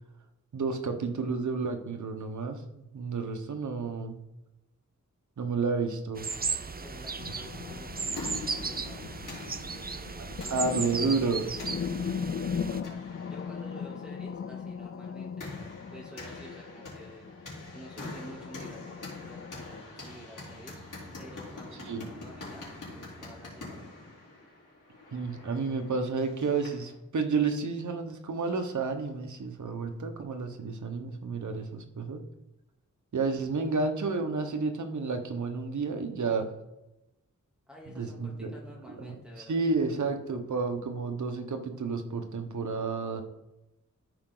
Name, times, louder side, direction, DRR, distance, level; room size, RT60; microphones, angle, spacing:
voice 1, 0.5-4.2 5.4-6.3 10.2-11.5 21.9-22.0 25.1-32.2 33.1-36.5 37.9-38.5 39.0-39.1 39.4-43.2, right 4 dB, 70° right, 5 dB, 1.1 m, -31 dB
sound 1, 6.2-12.8, right 5 dB, 30° right, 0.5 m, -36 dB
sound 2, 6.4-19.8, left 6 dB, 45° left, 0.4 m, -39 dB
voice 2, 6.8-11.4 12.1-17.5 17.7-20.8 21.2-23.9 37.7-39.7, equal, 5° right, -4 dB, 2.8 m, -50 dB
sound 3, 7.9-26.9, left 2 dB, 80° left, 3.8 m, -46 dB
13.5 x 4.9 x 3.9 m, 0.95 s
wide cardioid pair, 100°, 31 cm